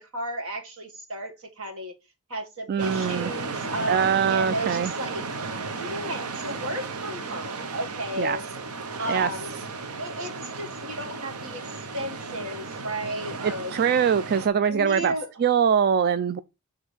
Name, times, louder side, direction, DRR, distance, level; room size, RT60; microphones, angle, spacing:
voice 1, 0.0-1.9 2.3-5.2 5.7-8.4 9.0-9.5 10.0-13.7 14.7-15.3, right 1 dB, 65° right, 1.8 m, -33 dB
voice 2, 2.7-3.3 3.9-4.9 8.2-8.4 9.1-9.3 13.7-15.1 15.4-16.4, right 7 dB, 45° right, 0.3 m, -22 dB
sound 1, 2.8-14.5, right 4 dB, 85° right, 0.9 m, -34 dB
6.2 x 3.7 x 4.9 m
head